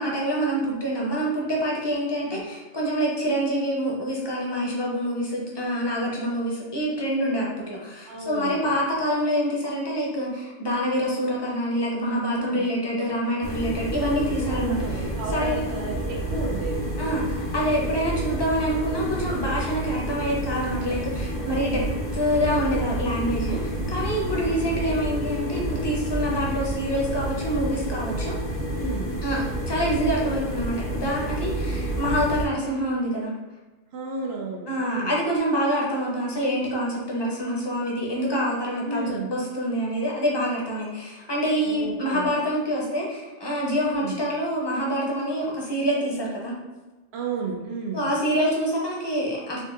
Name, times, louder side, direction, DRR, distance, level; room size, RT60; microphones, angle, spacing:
voice 1, 0.0-15.0 15.3-15.6 17.0-21.8 22.1-23.6 23.9-28.4 29.2-33.3 34.7-46.6 47.9-49.7, equal, 30° left, -3 dB, 0.6 m, -26 dB
voice 2, 8.1-8.7 12.3-12.6 14.5-16.9 21.3-21.7 24.3-24.8 28.8-29.2 33.9-35.1 38.9-39.3 41.7-42.3 43.8-44.1 47.1-48.0, right 4 dB, 80° right, 0 dB, 0.9 m, -33 dB
sound 1, 13.4-32.5, right 1 dB, 60° left, 0.9 m, -29 dB
3.9 x 2.5 x 2.4 m, 1.2 s
omnidirectional pair, 1.1 m